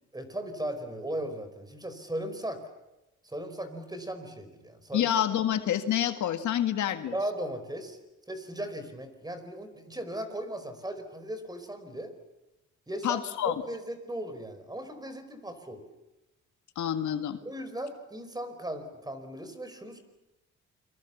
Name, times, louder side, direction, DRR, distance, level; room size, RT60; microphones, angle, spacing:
voice 1, 0.1-2.6 3.2-5.1 7.1-8.0 8.3-12.1 12.9-15.9 17.4-20.0, right 1 dB, 15° right, 9 dB, 4.9 m, -37 dB
voice 2, 4.9-7.1 13.0-13.5 16.8-17.4, left 10 dB, 75° left, 8 dB, 1.9 m, -28 dB
29.0 x 24.0 x 7.2 m, 0.97 s
cardioid pair, 90°, 30 cm